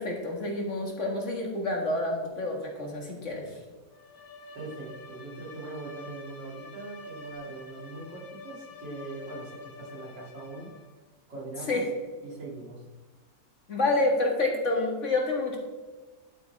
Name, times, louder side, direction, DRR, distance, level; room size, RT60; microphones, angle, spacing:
voice 1, 0.0-3.4 11.7-11.8 13.7-15.6, left 2 dB, 45° left, 0 dB, 2.2 m, -28 dB
Bowed string instrument, 3.9-11.0, left 2 dB, 60° left, 1.6 m, -47 dB
voice 2, 4.5-10.7 11.3-11.9 12.2-12.8, right 3 dB, 90° right, -3 dB, 3.5 m, -41 dB
12.0 x 8.5 x 3.5 m, 1.3 s
omnidirectional pair, 1.9 m